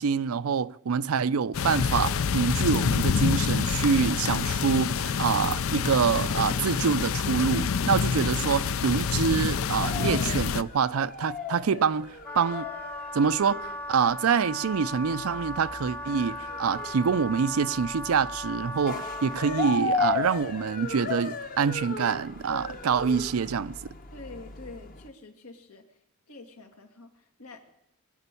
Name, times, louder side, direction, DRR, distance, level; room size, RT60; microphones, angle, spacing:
voice 1, 0.0-12.7 13.1-23.8, right 6 dB, 75° right, 0.5 m, -26 dB
sound 1, 1.5-10.6, left 6 dB, 65° left, 0.5 m, -27 dB
sound 2, 8.7-25.1, left 4 dB, 40° left, 1.0 m, -37 dB
Wind instrument woodwind instrument, 12.2-19.8, left 1 dB, 5° left, 0.6 m, -37 dB
voice 2, 24.1-25.8 26.3-27.7, left 3 dB, 85° left, 2.1 m, -46 dB
22.5 x 7.9 x 6.9 m
head